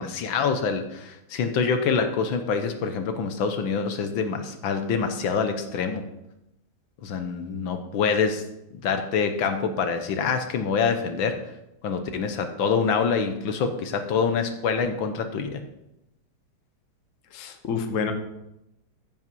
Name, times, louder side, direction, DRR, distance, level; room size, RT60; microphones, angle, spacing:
voice 1, 0.0-6.0 7.0-8.4 8.8-11.4 11.8-15.6, left 5 dB, 75° left, 7 dB, 1.6 m, -26 dB
voice 2, 17.3-18.1, left 6 dB, 45° left, 6 dB, 1.2 m, -28 dB
14.5 x 5.5 x 5.4 m, 0.89 s
omnidirectional pair, 2.2 m